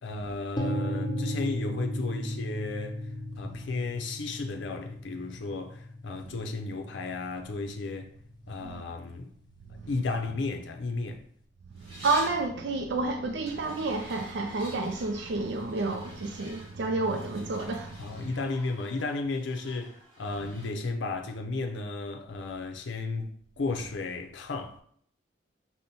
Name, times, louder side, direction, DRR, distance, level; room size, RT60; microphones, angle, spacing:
voice 1, 0.0-3.0 3.4-8.1 8.5-9.3 9.9-11.3 18.0-24.8, left 3 dB, 80° left, 0.5 m, -34 dB
sound 1, 0.6-8.5, equal, 25° left, 0.5 m, -36 dB
sound 2, 11.7-12.4 13.5-20.7, right 1 dB, 30° right, 1.3 m, -48 dB
voice 2, 12.0-17.9, right 3 dB, 65° right, 0.4 m, -30 dB
5.2 x 2.1 x 4.2 m
head